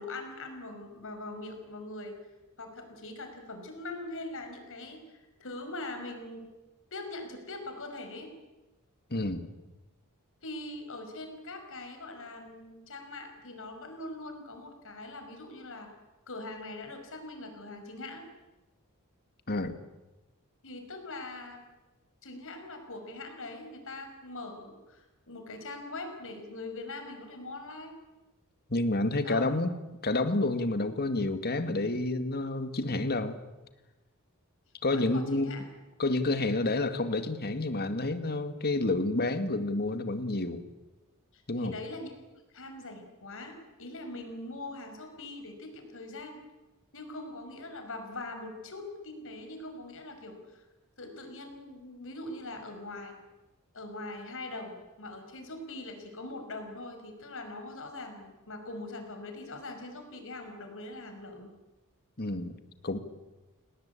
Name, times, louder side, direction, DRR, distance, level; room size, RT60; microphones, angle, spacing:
voice 1, 0.0-2.1 2.6-6.5 6.9-8.3 10.4-15.9 16.3-18.3 20.6-21.6 22.2-28.0 29.2-29.5 34.9-35.6 41.3-42.2 42.5-46.4 46.9-50.6 51.0-53.2 53.7-61.5, left 2 dB, 65° left, 5 dB, 6.0 m, -42 dB
voice 2, 9.1-9.5 19.5-19.8 28.7-29.7 30.0-33.4 34.8-35.6 36.0-40.6 41.5-41.8 62.2-62.5 62.8-63.0, left 2 dB, 45° left, 10 dB, 2.1 m, -29 dB
29.5 x 19.0 x 8.5 m, 1.1 s
head